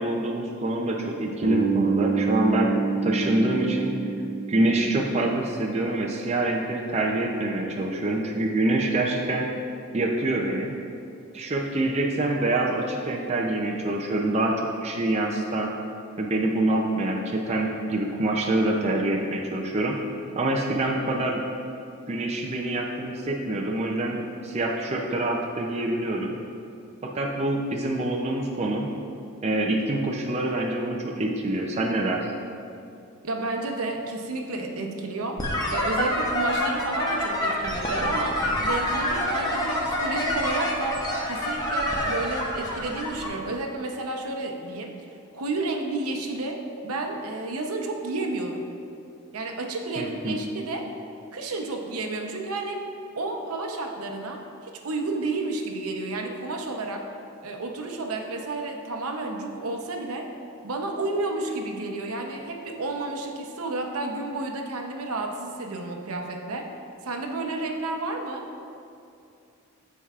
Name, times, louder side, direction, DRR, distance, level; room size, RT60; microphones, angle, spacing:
voice 1, 0.0-2.7 3.0-3.9 4.5-9.5 9.9-10.7 11.3-14.5 14.8-15.7 16.2-19.9 20.4-21.4 22.1-26.3 27.0-28.9 29.4-32.3 50.0-50.4, right 2 dB, 30° right, -1 dB, 0.4 m, -26 dB
Bass guitar, 1.4-5.5, right 5 dB, 50° right, 1.2 m, -27 dB
voice 2, 33.2-41.0 41.3-44.9 45.3-46.6 46.8-48.6 49.3-50.9 51.3-52.8 53.2-57.1 57.4-60.3 60.6-66.7 67.0-68.4, right 2 dB, 80° right, 3 dB, 0.8 m, -31 dB
sound 1, 35.4-43.3, left 1 dB, 15° left, 0.8 m, -27 dB
13.5 x 4.6 x 2.4 m, 2.5 s
head